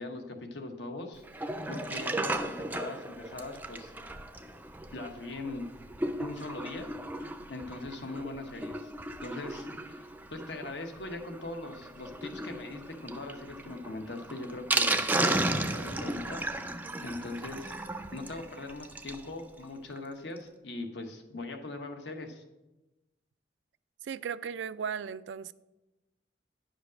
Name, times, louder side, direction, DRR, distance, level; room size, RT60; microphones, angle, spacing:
voice 1, 0.0-3.9 4.9-5.7 6.2-8.9 9.2-16.4 17.0-17.8 18.1-22.4, left 2 dB, 75° left, 1.0 m, -41 dB
Sink (filling or washing), 1.2-19.3 19.6-19.7 19.9-20.0 20.4-20.5, right 2 dB, 10° right, 0.4 m, -35 dB
voice 2, 24.0-25.5, right 7 dB, 85° right, 0.3 m, -36 dB
10.5 x 5.1 x 6.1 m
head